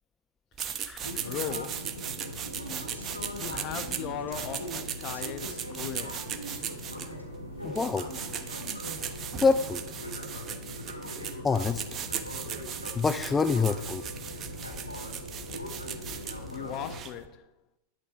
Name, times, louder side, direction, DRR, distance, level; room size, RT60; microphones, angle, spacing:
sound 1, 0.5-17.3, right 8 dB, 30° right, 1.1 m, -38 dB
sound 2, 1.0-17.0, left 1 dB, 85° left, 2.2 m, -40 dB
voice 1, 1.2-1.9 3.4-6.3 16.5-17.5, left 9 dB, 35° left, 1.2 m, -38 dB
voice 2, 7.6-8.1 9.4-9.8 11.4-11.8 12.9-14.0, left 4 dB, 15° left, 0.5 m, -26 dB
sound 3, 11.6-16.8, right 1 dB, 10° right, 1.3 m, -52 dB
11.5 x 10.5 x 4.9 m
figure-of-eight pair, 90°, 0 cm